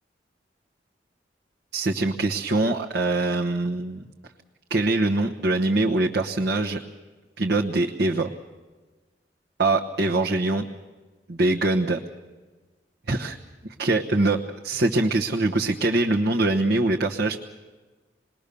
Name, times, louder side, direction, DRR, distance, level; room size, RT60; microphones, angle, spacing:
voice 1, 1.7-4.0 4.7-6.8 7.4-8.3 9.6-10.6 11.3-12.0 13.1-13.4 13.6-17.4, right 2 dB, 65° right, 0 dB, 1.2 m, -23 dB
28.0 x 20.5 x 6.9 m, 1.3 s
head